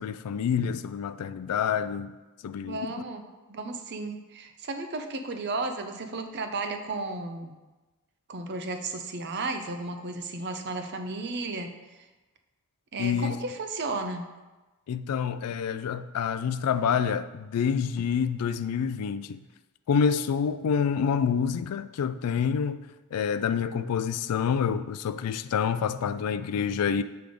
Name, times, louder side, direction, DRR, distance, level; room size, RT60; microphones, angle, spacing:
voice 1, 0.0-2.1 2.4-2.9 13.0-13.4 14.9-19.4 19.9-22.8 23.1-27.0, left 7 dB, 85° left, 0.3 m, -27 dB
voice 2, 2.6-3.2 3.5-7.5 8.3-11.7 12.0-12.1 12.9-14.3, right 3 dB, 50° right, 0.6 m, -34 dB
7.7 x 3.4 x 5.1 m
head